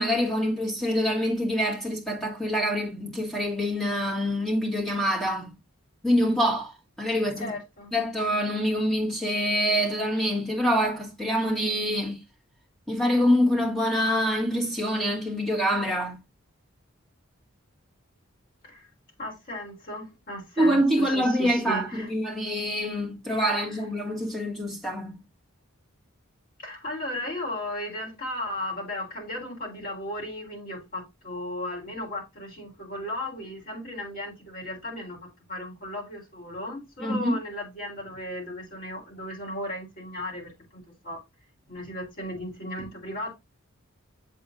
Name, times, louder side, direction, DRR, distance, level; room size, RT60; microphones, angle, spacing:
voice 1, 0.0-5.5 6.0-6.7 7.0-7.5 7.9-12.2 12.9-16.2 20.6-25.2 37.0-37.4, equal, ahead, 2.2 m, -25 dB
voice 2, 7.4-7.9 18.6-18.9 19.2-22.1 23.5-23.8 26.6-41.2 41.7-43.3, left 1 dB, 45° left, 3.8 m, -36 dB
7.5 x 5.6 x 2.6 m
head